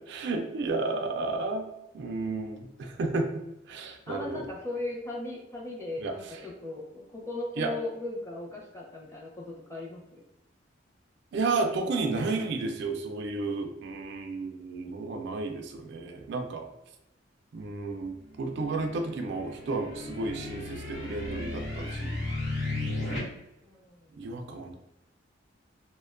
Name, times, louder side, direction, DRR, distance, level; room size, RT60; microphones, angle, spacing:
voice 1, 0.0-1.7 1.9-4.4 6.0-6.4 7.6-7.7 11.3-16.7 17.5-22.2 24.2-24.8, right 3 dB, 65° right, 4 dB, 0.3 m, -32 dB
voice 2, 0.8-1.2 4.1-10.2 23.6-24.1, left 2 dB, 15° left, -3 dB, 0.5 m, -38 dB
sound 1, 18.2-23.2, left 2 dB, 75° left, 1.0 m, -35 dB
2.4 x 2.1 x 2.4 m, 0.84 s
head